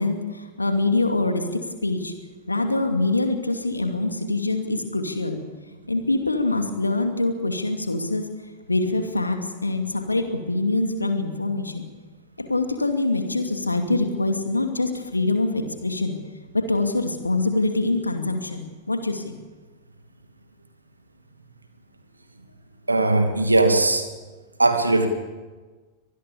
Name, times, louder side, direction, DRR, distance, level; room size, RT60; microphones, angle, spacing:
voice 1, 0.0-2.1 2.5-5.4 5.9-8.3 8.7-11.9 12.4-16.1 16.5-19.3, left 2 dB, 80° left, 6 dB, 2.5 m, -24 dB
voice 2, 22.9-24.0 24.6-25.1, right 2 dB, 80° right, 6 dB, 2.6 m, -19 dB
24.5 x 19.5 x 7.1 m, 1.3 s
figure-of-eight pair, 90°, 0 cm